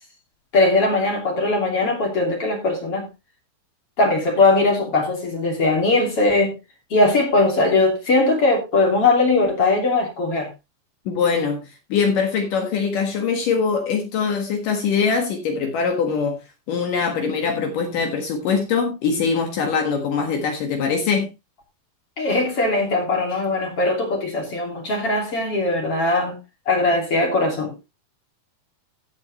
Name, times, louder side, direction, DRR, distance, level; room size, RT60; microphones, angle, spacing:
voice 1, 0.5-3.1 4.0-6.5 6.9-10.5 22.2-26.4 26.7-27.7, left 2 dB, 40° left, 3.6 m, -20 dB
voice 2, 11.1-16.4 16.7-21.3, left 5 dB, 65° left, 3.1 m, -22 dB
15.0 x 8.2 x 3.0 m
omnidirectional pair, 4.2 m